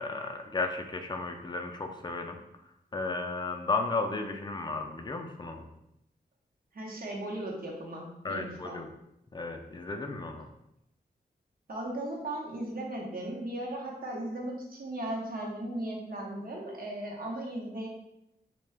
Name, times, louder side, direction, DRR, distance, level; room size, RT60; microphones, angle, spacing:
voice 1, 0.0-2.4 2.9-5.6 8.2-8.9 9.3-10.5, left 3 dB, 25° left, 4 dB, 0.4 m, -34 dB
voice 2, 6.7-8.8 11.7-17.9, right 1 dB, 60° right, -2 dB, 0.8 m, -37 dB
2.7 x 2.2 x 3.2 m, 0.84 s
wide cardioid pair, 70°, 17 cm